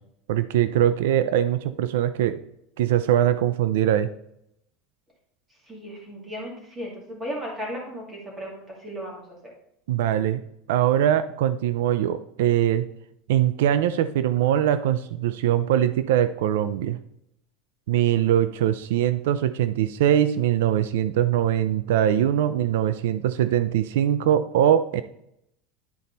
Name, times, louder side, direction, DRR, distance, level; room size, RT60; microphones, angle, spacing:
voice 1, 0.3-2.4 2.8-4.1 9.9-10.4 10.7-12.9 13.3-17.0 17.9-25.0, right 11 dB, 85° right, 13 dB, 0.4 m, -22 dB
voice 2, 5.7-9.5, equal, 10° right, -2 dB, 2.3 m, -36 dB
10.5 x 4.2 x 4.0 m, 0.77 s
supercardioid pair, 165°, 0 cm